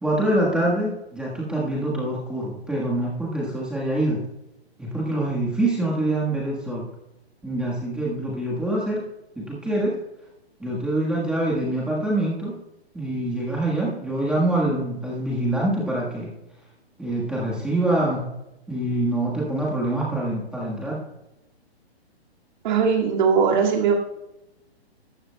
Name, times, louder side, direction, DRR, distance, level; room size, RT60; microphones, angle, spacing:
voice 1, 0.0-4.2 4.8-6.9 7.4-9.0 9.4-9.9 10.6-12.5 12.9-16.3 17.0-18.3 18.7-21.0, right 1 dB, 5° right, -5 dB, 1.4 m, -25 dB
voice 2, 22.6-23.9, right 6 dB, 45° right, 1 dB, 2.2 m, -19 dB
15.5 x 12.5 x 2.2 m, 0.92 s
hypercardioid pair, 155°, 32 cm